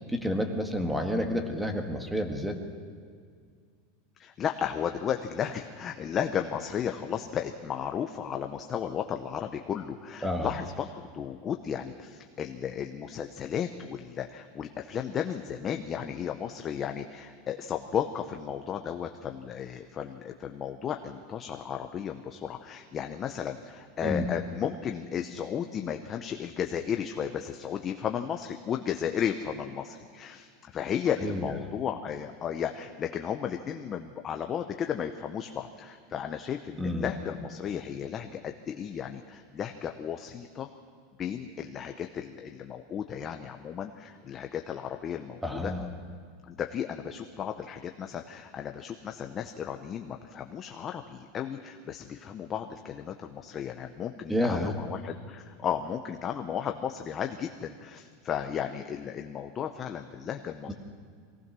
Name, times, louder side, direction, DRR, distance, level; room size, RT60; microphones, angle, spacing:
voice 1, 0.1-2.6 10.2-10.5 24.0-24.3 31.2-31.5 36.8-37.1 45.4-45.8 54.3-54.7 60.7-60.8, equal, 5° right, 5 dB, 1.4 m, -29 dB
voice 2, 4.2-40.7 41.2-45.7 46.5-60.7, left 8 dB, 25° left, 5 dB, 0.7 m, -34 dB
24.0 x 18.0 x 6.2 m, 2.1 s
supercardioid pair, 165°, 0 cm